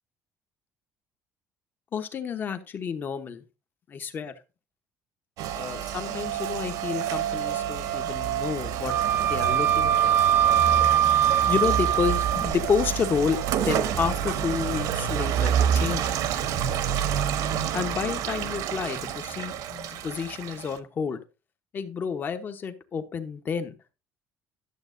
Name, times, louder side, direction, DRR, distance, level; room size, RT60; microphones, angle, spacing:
voice 1, 1.9-3.4 3.9-4.3 5.5-8.9 9.2-10.2 11.5-13.4 13.6-16.2 17.7-21.2 21.7-23.8, left 6 dB, 30° left, 9 dB, 1.0 m, -30 dB
Rain, 5.4-20.8, right 9 dB, 70° right, 1.0 m, -28 dB
Wind instrument woodwind instrument, 8.9-12.5, right 10 dB, 30° right, 0.3 m, -22 dB
11.5 x 7.3 x 2.6 m, 0.29 s
cardioid pair, 160°, 6 cm